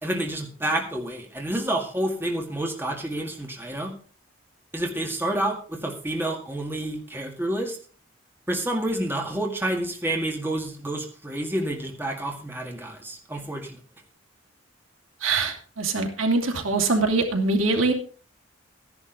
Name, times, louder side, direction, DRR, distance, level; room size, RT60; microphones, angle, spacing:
voice 1, 0.0-3.9 4.7-7.8 8.5-13.8, right 1 dB, 10° right, 1 dB, 1.9 m, -29 dB
voice 2, 15.2-17.9, right 3 dB, 90° right, 3 dB, 2.7 m, -23 dB
14.0 x 10.5 x 3.9 m, 0.42 s
head